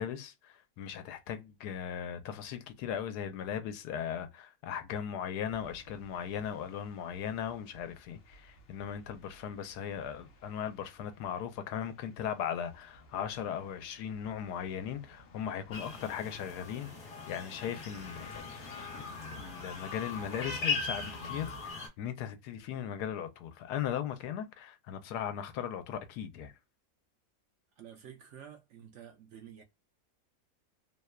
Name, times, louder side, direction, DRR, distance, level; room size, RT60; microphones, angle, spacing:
voice 1, 0.0-16.9 17.3-18.4 19.0-26.5, left 9 dB, 85° left, 1.1 m, -38 dB
sound 1, 5.5-21.7, left 4 dB, 70° left, 0.5 m, -53 dB
sound 2, 15.7-21.9, left 4 dB, 45° left, 0.8 m, -39 dB
voice 2, 27.8-29.6, right 9 dB, 65° right, 0.7 m, -50 dB
2.9 x 2.1 x 2.2 m
omnidirectional pair, 1.7 m